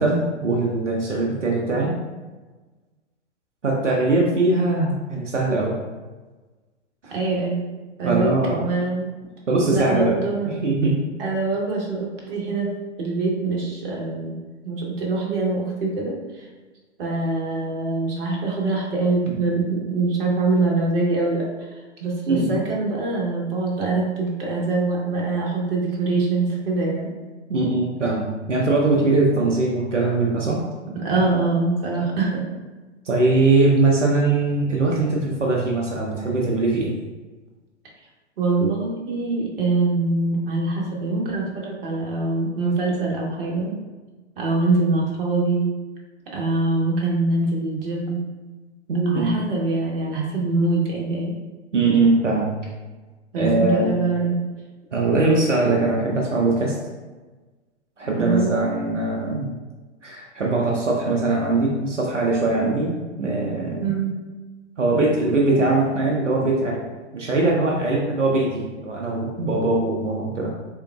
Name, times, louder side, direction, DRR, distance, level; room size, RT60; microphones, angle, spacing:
voice 1, 0.0-1.9 3.6-5.7 7.1-7.2 8.0-8.6 9.5-10.9 19.3-19.4 22.3-22.5 27.5-30.6 33.1-36.9 48.9-49.4 51.7-52.5 53.4-53.9 54.9-56.7 58.0-59.5 60.0-63.9 64.8-66.9 67.1-70.5, right 2 dB, 90° right, -2 dB, 0.8 m, -21 dB
voice 2, 7.1-7.6 8.0-9.1 9.7-10.6 11.2-12.7 13.0-14.3 14.6-16.5 17.0-27.1 30.9-32.4 38.4-43.8 44.4-45.7 46.2-48.2 49.1-51.3 53.3-54.4 58.2-58.6 63.8-64.2, right 3 dB, 50° right, -3 dB, 1.2 m, -24 dB
3.6 x 3.4 x 2.4 m, 1.3 s
figure-of-eight pair, 110°, 35 cm